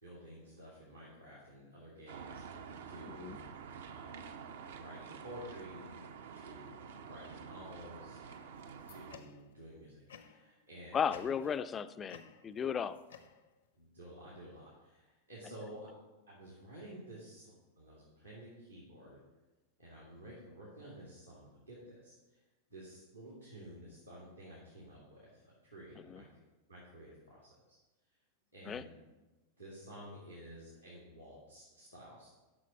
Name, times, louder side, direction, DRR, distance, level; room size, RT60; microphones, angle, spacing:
voice 1, 0.0-3.5 3.9-4.3 4.7-6.1 6.3-8.2 8.9-11.3 13.7-15.9 16.3-19.2 19.8-22.4 22.7-26.3 26.7-27.4 27.7-27.8 28.5-28.9 29.6-32.3, equal, 90° right, -6 dB, 2.3 m, -52 dB
sound 1, 2.1-9.2, right 6 dB, 60° right, 0.6 m, -48 dB
sound 2, 8.3-9.6 10.1-10.6 11.1-11.8 12.1-13.8, left 7 dB, 65° left, 0.6 m, -56 dB
voice 2, 10.9-13.0 26.1-26.2 28.7-28.9, left 7 dB, 25° left, 14 dB, 0.3 m, -35 dB
9.8 x 6.2 x 4.3 m, 1.1 s
figure-of-eight pair, 90°, 0 cm